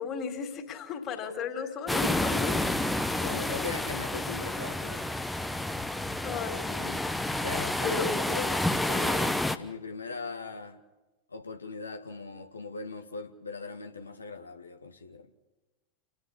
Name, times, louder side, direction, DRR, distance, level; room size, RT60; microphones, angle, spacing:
voice 1, 0.0-2.6 6.2-6.9 7.8-8.1 8.8-9.0, left 6 dB, 30° left, 3 dB, 3.5 m, -35 dB
sound 1, 1.9-9.6, left 1 dB, 5° left, 1.0 m, -29 dB
voice 2, 3.2-5.1 7.4-10.8 11.3-15.3, left 4 dB, 75° left, 6 dB, 1.8 m, -39 dB
29.5 x 11.0 x 8.5 m, 1.1 s
figure-of-eight pair, 90°, 0 cm